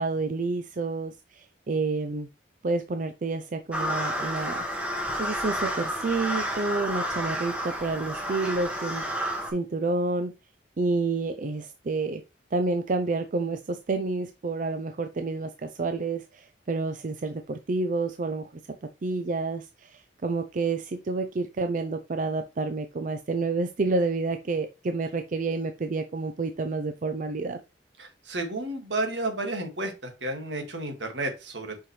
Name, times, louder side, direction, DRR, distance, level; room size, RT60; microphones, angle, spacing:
voice 1, 0.0-2.3 2.6-4.7 5.2-9.0 9.5-10.3 10.8-12.2 12.5-18.5 19.0-27.6, right 3 dB, 45° right, 8 dB, 0.5 m, -29 dB
sound 1, 3.7-9.5, equal, 5° right, 1.5 m, -30 dB
voice 2, 28.0-29.9 30.2-31.9, right 2 dB, 75° right, 5 dB, 1.9 m, -31 dB
5.6 x 5.6 x 3.1 m, 0.27 s
head